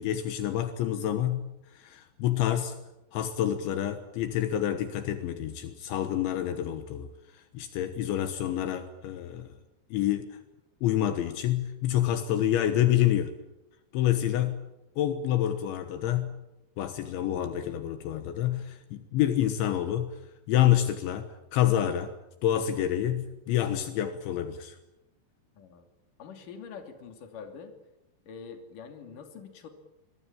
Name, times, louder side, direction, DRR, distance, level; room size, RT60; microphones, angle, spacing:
voice 1, 0.0-2.8 3.1-7.1 7.3-9.5 9.9-10.3 10.8-13.3 13.9-14.6 15.0-16.3 16.8-20.2 20.5-22.1 22.4-24.8, left 12 dB, 75° left, 9 dB, 3.6 m, -28 dB
voice 2, 25.6-25.9 26.2-27.7 28.3-29.7, left 6 dB, 50° left, 6 dB, 3.9 m, -44 dB
26.0 x 22.0 x 8.9 m, 0.92 s
omnidirectional pair, 5.5 m